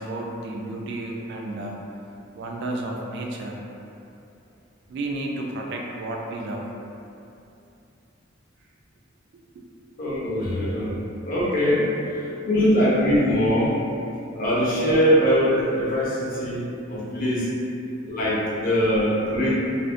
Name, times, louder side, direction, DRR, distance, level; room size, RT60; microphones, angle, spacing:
voice 1, 0.0-1.8 2.3-3.6 4.9-6.7 9.3-9.9 16.4-16.5 16.8-16.9, right 2 dB, 60° right, 0 dB, 0.3 m, -32 dB
voice 2, 10.0-11.0 11.3-11.9 12.4-13.8 14.3-17.5 18.1-19.6, equal, 45° left, -7 dB, 0.6 m, -22 dB
2.5 x 2.0 x 2.4 m, 2.7 s
head